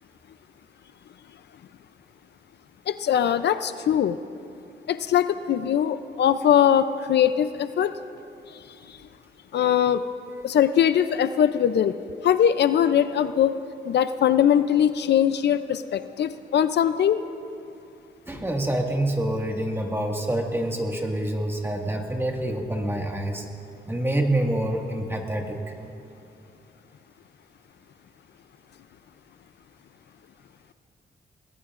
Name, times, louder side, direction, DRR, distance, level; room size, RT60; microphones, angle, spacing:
voice 1, 2.9-4.2 4.9-7.9 8.5-8.6 9.5-10.0 10.4-11.9 12.2-13.6 13.9-17.2, left 9 dB, 70° left, 11 dB, 0.5 m, -21 dB
voice 2, 18.3-23.5 23.9-25.6, right 1 dB, 15° right, 1 dB, 1.8 m, -26 dB
27.0 x 19.0 x 2.5 m, 2.6 s
cardioid pair, 105°, 18 cm